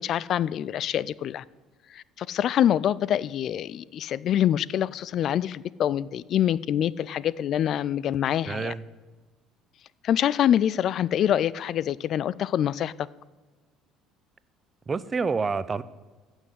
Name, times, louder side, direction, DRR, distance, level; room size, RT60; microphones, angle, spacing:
voice 1, 0.0-1.4 1.9-8.7 10.0-12.9, left 10 dB, 50° left, 0.3 m, -25 dB
voice 2, 8.5-8.8 14.9-15.8, right 4 dB, 30° right, 0.7 m, -28 dB
15.5 x 6.3 x 8.1 m
figure-of-eight pair, 60°, 0 cm